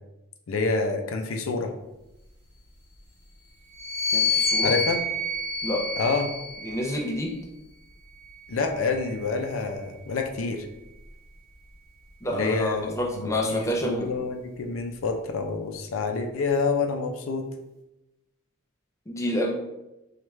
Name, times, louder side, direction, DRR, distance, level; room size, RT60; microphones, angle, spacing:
voice 1, 0.5-1.7 4.6-5.0 6.0-6.3 8.5-10.7 12.3-17.5, left 4 dB, 75° left, 4 dB, 0.5 m, -27 dB
sound 1, 3.7-7.3 8.2-9.8, left 3 dB, 50° right, 1.0 m, -29 dB
voice 2, 4.1-4.7 5.6-5.9 6.6-7.3 12.2-14.1 19.1-19.5, left 1 dB, 15° left, -1 dB, 0.5 m, -28 dB
4.5 x 2.4 x 3.1 m, 0.96 s
head